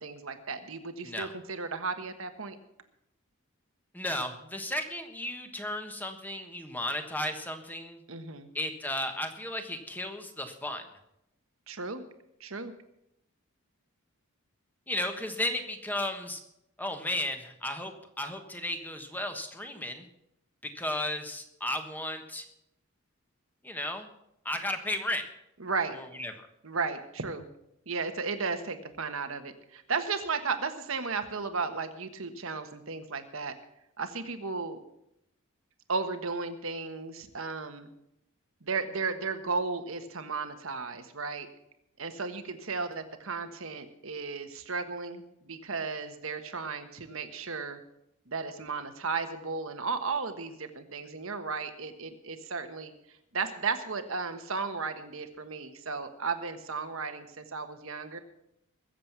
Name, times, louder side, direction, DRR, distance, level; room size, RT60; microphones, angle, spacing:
voice 1, 0.0-2.6 8.1-8.5 11.7-12.0 12.4-12.7 25.6-26.0 26.6-27.4 27.9-33.5 34.0-34.8 35.9-37.9 38.6-41.5 42.0-47.8 48.3-52.9 53.3-58.2, right 4 dB, 65° right, 8 dB, 1.4 m, -34 dB
voice 2, 3.9-8.0 8.5-10.8 14.9-16.4 16.8-20.1 20.6-22.4 23.6-24.1 24.4-25.2 25.9-26.5, left 1 dB, 10° left, 6 dB, 1.3 m, -34 dB
21.5 x 7.6 x 6.1 m, 0.82 s
head